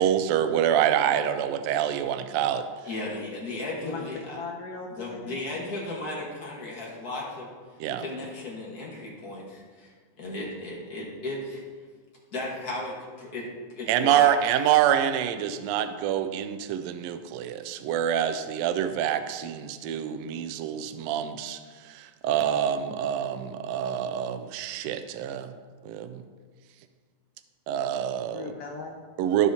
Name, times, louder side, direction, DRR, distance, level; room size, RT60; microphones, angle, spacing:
voice 1, 0.0-2.7 7.8-8.0 13.9-21.6 21.9-25.5 25.8-26.2 27.7-28.5 29.2-29.5, right 10 dB, 90° right, 10 dB, 1.4 m, -26 dB
voice 2, 2.8-4.4 5.0-7.5 8.0-11.6 12.3-14.3, left 2 dB, 45° left, -3 dB, 1.4 m, -35 dB
voice 3, 4.4-5.6 28.3-29.0, left 4 dB, 75° left, 1 dB, 1.4 m, -38 dB
15.0 x 5.6 x 2.8 m, 1.5 s
omnidirectional pair, 3.5 m